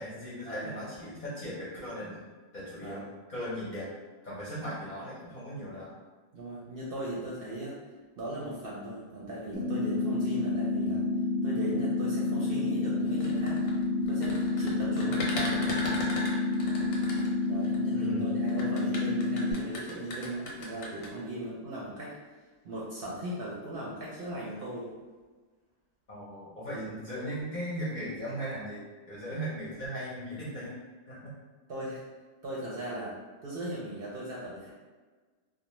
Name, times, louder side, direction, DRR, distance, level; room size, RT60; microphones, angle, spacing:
voice 1, 0.0-3.0 3.3-3.9 4.2-6.0 17.9-18.3 26.1-30.8 31.1-31.3, equal, 50° left, -9 dB, 0.6 m, -38 dB
voice 2, 6.3-7.8 8.2-11.1 11.4-13.6 14.1-15.6 17.5-22.2 22.6-24.9 31.7-32.0 32.4-33.2 33.4-34.7, right 1 dB, 60° right, -6 dB, 0.6 m, -38 dB
sound 1, 9.5-19.5, left 3 dB, 15° right, 0.5 m, -29 dB
sound 2, 13.1-17.8 18.5-21.1, left 1 dB, 90° left, 1.0 m, -37 dB
2.4 x 2.1 x 2.9 m, 1.4 s
omnidirectional pair, 1.3 m